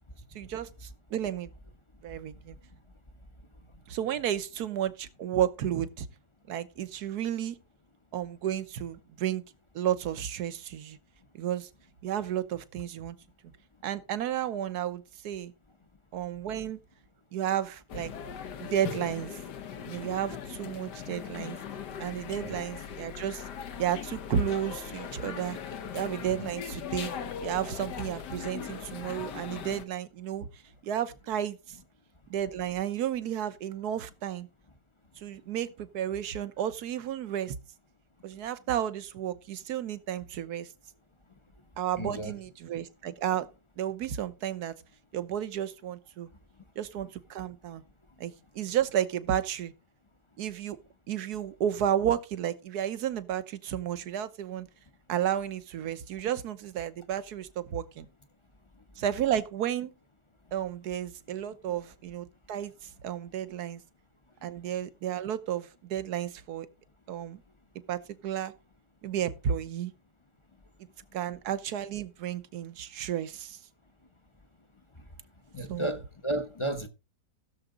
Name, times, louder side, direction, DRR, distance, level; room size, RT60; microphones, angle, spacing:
voice 1, 0.3-1.5 2.0-2.6 3.9-6.1 6.5-7.6 8.1-9.4 9.7-11.0 11.3-11.7 12.0-13.2 13.8-15.5 16.1-16.8 17.3-18.1 18.6-19.4 19.9-21.6 22.0-23.4 23.8-25.6 25.9-27.1 27.4-30.5 30.8-31.8 32.3-34.5 35.2-37.5 38.2-40.7 41.8-43.5 43.8-44.8 45.1-46.3 46.8-47.8 48.2-49.7 50.4-50.8 51.1-54.7 55.1-58.1 59.0-59.9 60.5-63.8 64.4-66.7 67.1-67.4 67.9-68.5 69.0-69.9 71.1-73.6 75.7-75.9, right 10 dB, 70° right, 1.4 m, -32 dB
sound 1, 17.9-29.8, left 7 dB, 80° left, 1.6 m, -39 dB
voice 2, 22.3-22.6 26.2-26.5 41.9-42.3 75.5-76.9, right 1 dB, 25° left, 0.7 m, -34 dB
16.0 x 7.1 x 3.8 m
omnidirectional pair, 1.8 m